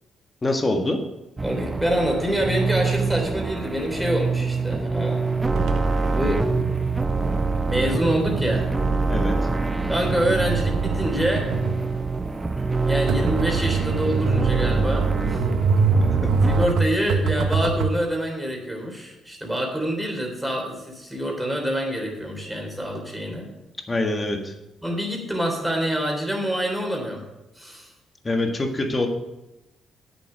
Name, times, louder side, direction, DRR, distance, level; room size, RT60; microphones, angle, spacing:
voice 1, 0.4-1.0 9.1-9.4 16.0-16.3 23.9-24.5 28.2-29.1, left 2 dB, 25° left, 4 dB, 1.7 m, -25 dB
voice 2, 1.4-5.2 6.1-6.4 7.7-8.7 9.9-11.5 12.8-15.4 16.5-23.5 24.8-27.2 27.6-27.9, right 1 dB, 5° right, 1 dB, 3.3 m, -26 dB
sound 1, 1.4-16.7, right 3 dB, 20° right, 0.7 m, -25 dB
sound 2, 5.6-17.9, right 4 dB, 85° right, 0.8 m, -25 dB
8.5 x 7.1 x 6.6 m, 0.96 s
cardioid pair, 90°, 0 cm